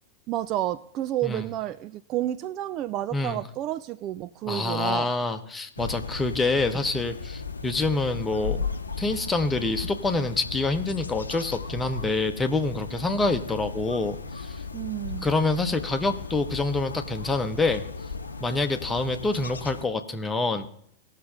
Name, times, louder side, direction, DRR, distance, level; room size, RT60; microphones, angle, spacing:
voice 1, 0.3-5.1 14.7-15.3, right 13 dB, 35° right, 14 dB, 0.3 m, -30 dB
voice 2, 4.5-8.7 9.0-14.6 15.2-17.8 18.4-20.7, left 3 dB, 10° left, 6 dB, 1.1 m, -26 dB
sound 1, 5.8-19.9, left 5 dB, 75° left, 0.7 m, -36 dB
18.5 x 6.6 x 3.8 m, 0.65 s
figure-of-eight pair, 90°, 0 cm